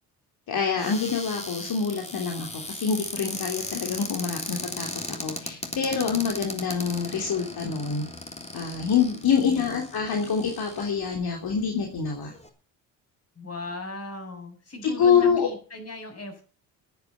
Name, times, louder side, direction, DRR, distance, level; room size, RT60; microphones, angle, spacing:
voice 1, 0.5-4.9 5.2-8.0 8.5-12.3 14.8-15.5, left 6 dB, 55° left, 2 dB, 3.3 m, -26 dB
Cupboard open or close, 0.8-11.1 11.8-11.9 12.1-12.5, left 2 dB, 15° left, 3.5 m, -37 dB
voice 2, 9.3-9.8 13.3-16.4, left 3 dB, 35° left, 6 dB, 6.8 m, -38 dB
11.5 x 9.7 x 8.2 m, 0.39 s
supercardioid pair, 65°, 43 cm